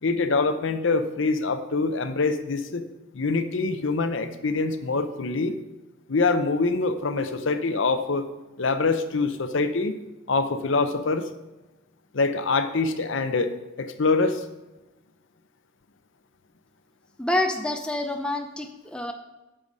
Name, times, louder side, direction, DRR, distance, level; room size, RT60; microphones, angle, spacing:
voice 1, 0.0-2.8 3.1-5.5 6.1-8.3 8.6-10.0 10.3-11.3 12.1-14.4, left 3 dB, 65° left, 9 dB, 0.7 m, -25 dB
voice 2, 17.2-19.1, left 1 dB, 5° left, 4 dB, 0.5 m, -27 dB
9.0 x 6.3 x 5.4 m, 1.1 s
head